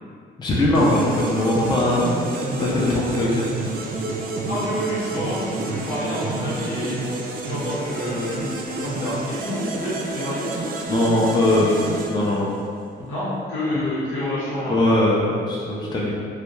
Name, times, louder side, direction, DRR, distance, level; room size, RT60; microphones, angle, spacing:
voice 1, 0.4-2.3 2.6-3.8 10.9-11.8 12.1-12.5 13.0-13.1 14.7-16.1, left 1 dB, 20° left, -5 dB, 0.5 m, -21 dB
sound 1, 0.7-12.8, right 2 dB, 45° right, 0.4 m, -29 dB
voice 2, 4.5-7.0 7.5-10.4 13.1-14.9, left 1 dB, 85° left, -10 dB, 1.1 m, -28 dB
2.3 x 2.2 x 3.0 m, 2.3 s
cardioid pair, 90°, 20 cm